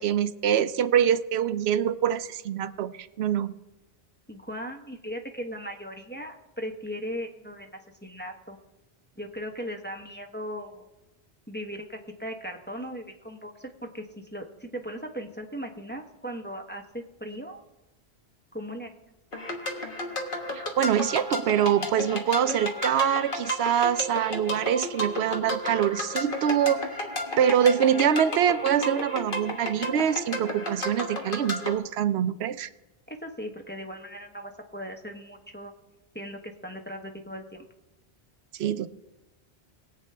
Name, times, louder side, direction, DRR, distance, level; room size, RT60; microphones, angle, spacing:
voice 1, 0.0-3.5 20.5-26.9 27.4-32.7 38.5-38.9, right 9 dB, 80° right, 13 dB, 0.8 m, -24 dB
voice 2, 4.3-8.6 9.2-10.9 11.5-17.6 18.5-18.9 33.1-35.7 36.1-37.7, equal, 10° left, 2 dB, 0.9 m, -38 dB
sound 1, 19.3-31.7, left 1 dB, 55° left, 1.5 m, -33 dB
22.0 x 8.1 x 3.3 m, 0.99 s
omnidirectional pair, 1.1 m